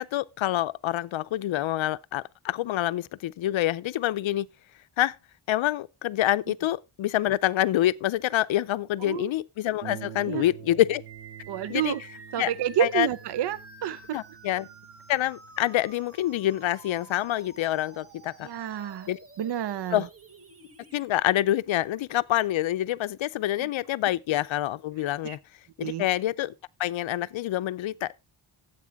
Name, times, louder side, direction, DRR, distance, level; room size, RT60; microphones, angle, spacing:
voice 1, 0.0-4.5 5.0-5.2 5.5-11.0 11.7-11.9 12.4-12.5 12.8-13.1 14.1-14.7 15.1-18.5 19.1-19.2 19.9-20.1 20.9-25.4 25.8-26.5 26.8-28.2, left 14 dB, 70° left, 0.6 m, -26 dB
Harp, 9.8-19.0 19.8-19.9 20.4-20.5, right 9 dB, 75° right, 1.2 m, -48 dB
sound 1, 11.1-21.1, right 3 dB, 30° right, 1.4 m, -50 dB
voice 2, 11.5-12.0 12.3-14.2 18.4-19.1 19.4-20.1 23.6-23.7 25.2-25.4 25.8-26.0, right 10 dB, 55° right, 0.6 m, -29 dB
13.5 x 8.2 x 3.5 m
wide cardioid pair, 175°, 49 cm